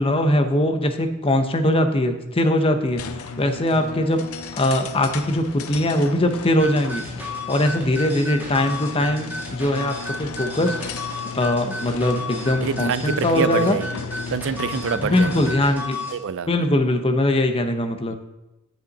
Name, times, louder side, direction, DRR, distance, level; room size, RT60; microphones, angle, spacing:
voice 1, 0.0-3.0 3.4-4.2 4.5-7.0 7.5-10.8 11.4-13.8 15.0-16.0 16.5-18.2, left 1 dB, 25° left, 6 dB, 0.8 m, -21 dB
sound 1, 2.9-15.7, left 5 dB, 80° left, 0.6 m, -35 dB
sound 2, 6.6-16.2, left 2 dB, 10° right, 1.8 m, -33 dB
voice 2, 12.6-14.0 14.3-15.5 16.1-16.5 18.1-18.2, right 6 dB, 60° right, 15 dB, 0.4 m, -26 dB
9.8 x 7.5 x 4.1 m, 0.98 s
head